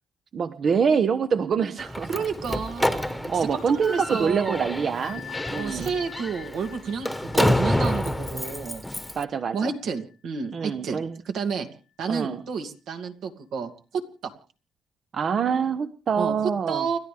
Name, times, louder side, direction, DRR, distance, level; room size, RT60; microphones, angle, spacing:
voice 1, 0.3-2.1 3.3-5.2 5.5-5.9 9.2-9.7 10.5-11.2 12.1-12.4 15.1-16.9, right 6 dB, 55° right, 10 dB, 1.0 m, -25 dB
Slam, 1.8-9.2, left 1 dB, 5° left, 1.2 m, -28 dB
voice 2, 2.1-4.8 5.5-8.8 9.5-11.7 12.0-14.3 16.2-16.3 16.7-17.0, right 5 dB, 75° right, 5 dB, 2.6 m, -30 dB
Bell, 5.0-10.4, left 10 dB, 55° left, 1.1 m, -44 dB
30.0 x 12.0 x 3.4 m, 0.36 s
cardioid pair, 90°, 0 cm